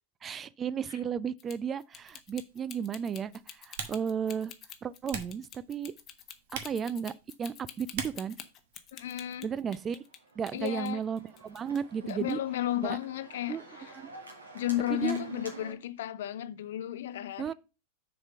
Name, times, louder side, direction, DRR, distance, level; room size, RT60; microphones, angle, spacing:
voice 1, 0.2-4.5 4.8-5.9 6.5-7.1 7.4-8.4 9.4-10.0 10.4-12.4 12.8-13.0 13.5-13.6 13.9-14.1 14.9-15.2 17.4-17.5, right 7 dB, 25° right, 0.3 m, -34 dB
sound 1, 1.4-10.2 10.5-11.8 12.1-12.3, left 10 dB, 30° left, 0.9 m, -48 dB
Typing, 1.9-9.4, right 6 dB, 55° right, 1.1 m, -46 dB
voice 2, 8.9-9.5 10.5-11.0 12.0-13.9 14.5-17.5, left 13 dB, 60° left, 0.5 m, -33 dB
Organ, 9.9-15.7, right 4 dB, 75° right, 1.6 m, -47 dB
6.6 x 4.3 x 5.6 m
figure-of-eight pair, 90°, 0 cm